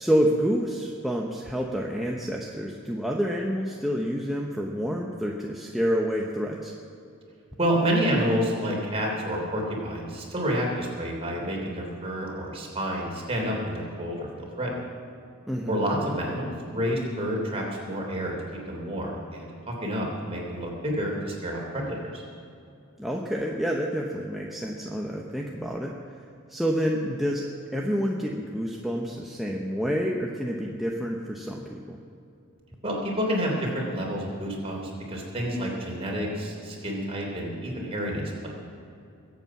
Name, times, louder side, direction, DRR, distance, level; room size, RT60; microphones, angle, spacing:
voice 1, 0.0-6.7 15.5-15.7 23.0-25.9 26.5-27.4 27.7-32.0, equal, ahead, -2 dB, 0.9 m, -28 dB
voice 2, 7.6-14.8 15.7-18.4 18.7-22.2 32.8-38.5, equal, 30° right, -2 dB, 3.4 m, -29 dB
22.0 x 8.3 x 5.9 m, 2.6 s
head